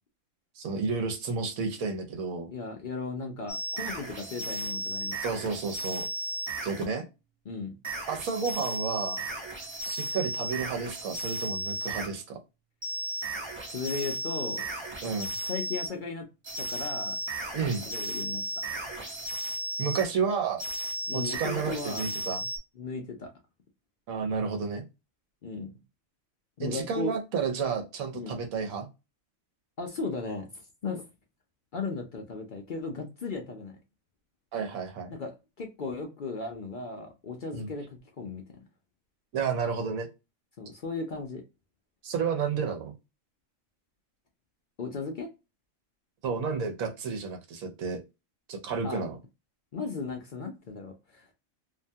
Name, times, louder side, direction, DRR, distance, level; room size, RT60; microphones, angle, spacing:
voice 1, 0.6-2.5 5.2-6.1 6.6-7.0 8.1-9.2 9.8-12.4 15.0-15.3 17.5-17.8 19.8-20.6 21.1-22.4 24.1-24.8 26.6-28.9 34.5-35.1 37.5-37.7 39.3-40.1 42.0-42.9 46.2-48.0 48.5-49.2, right 5 dB, 80° right, 1.2 m, -31 dB
voice 2, 2.5-5.2 7.5-7.7 13.7-14.7 15.4-16.2 16.6-17.2 17.9-18.4 21.1-22.1 22.8-23.3 25.4-25.7 26.6-27.1 28.1-28.4 29.8-31.1 31.7-33.8 35.1-35.3 35.6-38.4 40.6-41.4 44.8-45.3 48.8-49.1 49.7-51.3, left 4 dB, 55° left, 0.5 m, -36 dB
sound 1, 3.5-6.9 7.8-12.1 12.8-16.0 16.4-20.1 20.6-22.6, right 2 dB, 25° right, 0.6 m, -35 dB
2.7 x 2.2 x 2.6 m
omnidirectional pair, 1.4 m